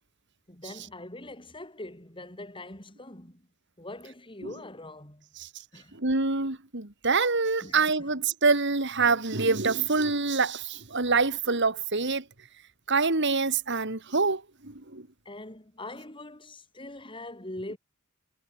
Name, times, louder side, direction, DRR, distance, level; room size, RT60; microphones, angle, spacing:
voice 1, 0.5-3.5 3.8-5.3 5.7-5.9 7.6-8.1 15.2-17.8, left 1 dB, 25° left, 6.0 m, -42 dB
voice 2, 6.0-12.2 12.9-15.0, right 4 dB, 60° right, 2.9 m, -26 dB
head